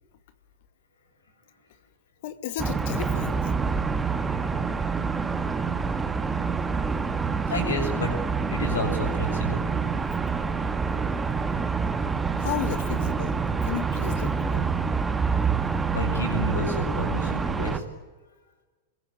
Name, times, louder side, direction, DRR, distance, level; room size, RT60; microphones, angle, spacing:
voice 1, 2.2-3.6 12.4-13.4 13.6-14.7, left 11 dB, 50° left, 10 dB, 2.3 m, -33 dB
sound 1, 2.6-17.8, right 5 dB, 15° right, 1.9 m, -27 dB
voice 2, 4.0-4.6 4.9-5.5 7.5-8.1 8.5-9.6 15.9-17.8, left 1 dB, 70° left, 6 dB, 6.9 m, -31 dB
28.0 x 22.0 x 9.5 m, 1.2 s
figure-of-eight pair, 90°, 0 cm